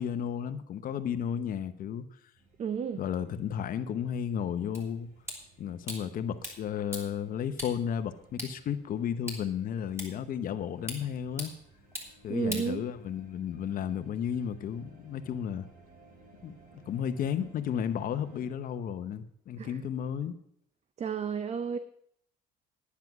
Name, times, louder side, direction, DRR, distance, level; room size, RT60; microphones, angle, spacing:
voice 1, 0.0-2.1 3.0-5.1 5.6-11.5 12.2-15.7 16.4-16.6 16.9-20.3, left 8 dB, 55° left, 0.9 m, -33 dB
sound 1, 2.3-18.5, right 2 dB, 60° right, 4.7 m, -59 dB
voice 2, 2.6-3.0 12.3-12.9 19.6-19.8 21.0-21.8, right 7 dB, 40° right, 0.6 m, -32 dB
sound 2, 4.7-13.3, equal, 15° right, 3.4 m, -45 dB
10.0 x 9.6 x 6.0 m
cardioid pair, 110°, 17 cm